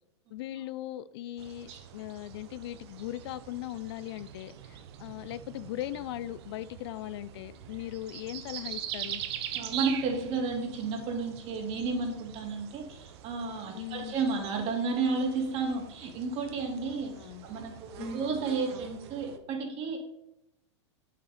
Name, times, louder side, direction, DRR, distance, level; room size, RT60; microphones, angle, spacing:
voice 1, 0.3-9.2 13.7-14.1 17.1-17.5 18.0-18.2, left 14 dB, 60° left, 0.5 m, -39 dB
sound 1, 1.4-19.4, right 10 dB, 60° right, 1.1 m, -43 dB
voice 2, 9.5-20.0, right 4 dB, 40° right, 2.8 m, -32 dB
8.7 x 7.5 x 5.1 m
hypercardioid pair, 110°, 15 cm